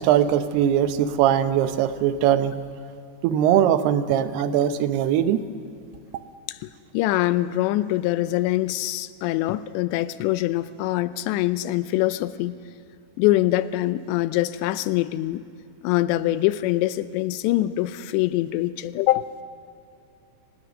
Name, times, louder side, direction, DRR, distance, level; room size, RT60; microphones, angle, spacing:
voice 1, 0.0-2.6 3.2-5.4, right 10 dB, 75° right, 10 dB, 2.8 m, -21 dB
voice 2, 6.5-12.6 13.2-15.4 15.8-19.3, left 15 dB, 85° left, 14 dB, 2.9 m, -24 dB
24.5 x 18.5 x 6.7 m, 2.6 s
omnidirectional pair, 5.0 m